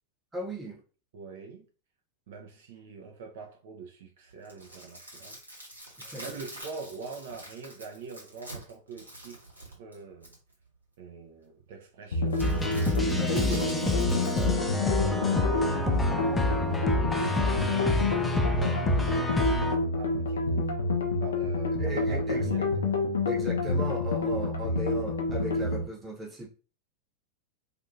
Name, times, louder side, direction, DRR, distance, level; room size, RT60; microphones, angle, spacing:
voice 1, 0.3-0.8 6.0-6.3 13.1-13.8 19.3-19.5 21.8-22.7 23.3-26.5, equal, 15° right, 0.9 m, -36 dB
voice 2, 1.1-1.6 2.3-5.4 6.2-9.4 9.8-10.3 11.0-12.4 12.7-13.5 14.4-16.6 16.9-18.1 18.4-20.7 21.2-22.7, right 5 dB, 55° right, 0.5 m, -44 dB
sound 1, 4.3-10.5 12.3-14.5, right 1 dB, 80° right, 1.0 m, -46 dB
sound 2, 12.1-25.8, left 2 dB, 65° left, 0.5 m, -28 dB
sound 3, 12.4-19.7, left 2 dB, 10° left, 0.4 m, -28 dB
2.6 x 2.5 x 2.5 m
figure-of-eight pair, 90°, 0 cm